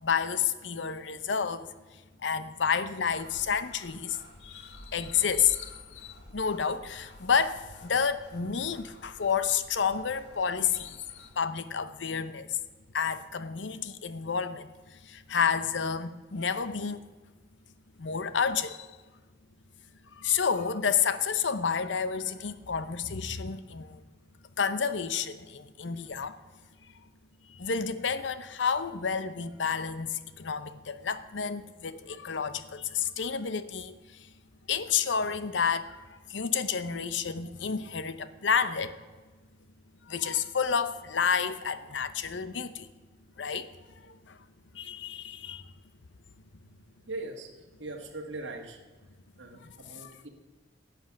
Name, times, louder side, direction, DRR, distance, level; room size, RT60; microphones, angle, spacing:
voice 1, 0.0-1.7 2.2-12.6 12.9-17.0 18.0-18.9 20.1-24.0 24.6-26.4 27.5-34.3 34.7-39.0 40.0-42.9 43.4-43.7 44.0-44.4 44.7-45.7 49.6-50.1, left 6 dB, 80° left, 13 dB, 0.7 m, -30 dB
sound 1, 3.1-11.3, left 1 dB, 60° left, 2.1 m, -52 dB
voice 2, 47.1-47.5 47.8-48.8 49.4-50.3, right 2 dB, 85° right, 1 dB, 1.5 m, -40 dB
11.5 x 8.0 x 7.1 m, 1.3 s
head